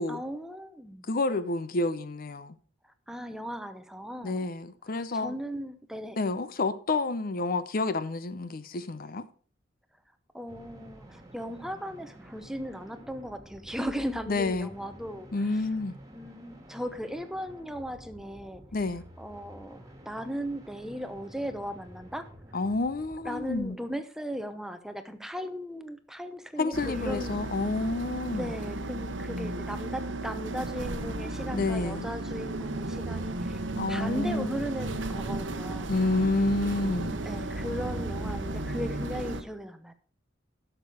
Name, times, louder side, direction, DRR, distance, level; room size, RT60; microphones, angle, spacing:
voice 1, 0.1-1.1 3.1-4.5 4.9-6.2 10.3-15.6 16.1-18.6 19.2-22.3 23.2-27.4 28.3-33.6 33.9-35.9 37.3-39.9, equal, ahead, 0.8 m, -37 dB
voice 2, 1.1-2.6 4.2-5.3 6.2-9.2 14.3-14.7 15.3-16.0 18.7-19.0 22.5-23.8 26.6-28.5 31.5-32.1 33.8-34.5 35.9-37.1, left 2 dB, 50° left, 0.6 m, -29 dB
sound 1, 10.5-23.7, equal, 20° right, 1.9 m, -50 dB
sound 2, 26.7-39.4, right 2 dB, 70° right, 1.0 m, -34 dB
12.0 x 6.8 x 4.8 m
head